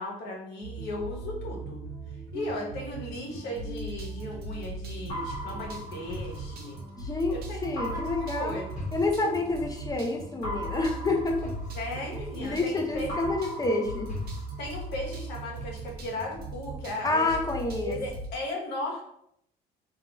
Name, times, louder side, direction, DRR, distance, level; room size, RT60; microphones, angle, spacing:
voice 1, 0.0-1.8 2.3-6.8 7.3-8.9 11.7-13.2 14.6-19.0, left 1 dB, 80° left, -1 dB, 0.9 m, -36 dB
sound 1, 0.6-18.3, right 2 dB, 65° right, 0.6 m, -39 dB
sound 2, 0.8-6.4 6.9-7.1 7.7-7.8, right 2 dB, ahead, 1.0 m, -47 dB
sound 3, 5.1-7.2 7.8-9.8 10.4-12.7 13.1-15.2, left 1 dB, 50° left, 1.1 m, -39 dB
voice 2, 7.0-8.6 8.9-11.5 12.4-14.1 17.0-18.0, left 2 dB, 20° left, 2 dB, 0.4 m, -28 dB
2.4 x 2.3 x 2.9 m, 0.71 s
cardioid pair, 110°, 17 cm